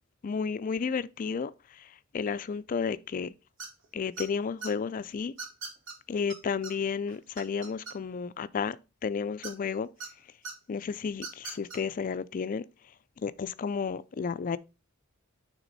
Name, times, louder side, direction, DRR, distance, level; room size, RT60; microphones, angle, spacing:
voice 1, 0.2-3.3 3.9-5.3 6.1-8.8 9.0-9.9 10.7-12.6 13.2-14.6, left 5 dB, 40° left, 0.3 m, -32 dB
sound 1, 3.6-3.9 4.2-4.7 5.4-5.9 6.3-6.4 6.6-6.7 7.1-8.2 9.4-10.1 10.4-10.5 11.1-11.8, right 4 dB, 65° right, 1.8 m, -39 dB
9.1 x 3.5 x 4.0 m
head